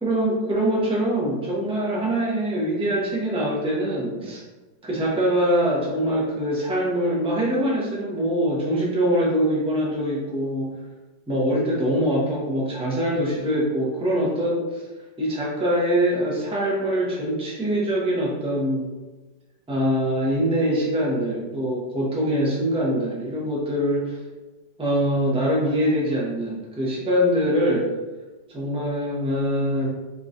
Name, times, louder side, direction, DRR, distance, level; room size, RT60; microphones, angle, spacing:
voice 1, 0.0-4.4 4.8-10.7 11.3-14.6 15.2-18.9 19.7-24.2 24.8-27.8 28.5-29.9, equal, 5° right, -5 dB, 0.5 m, -23 dB
4.1 x 3.7 x 2.6 m, 1.2 s
omnidirectional pair, 2.0 m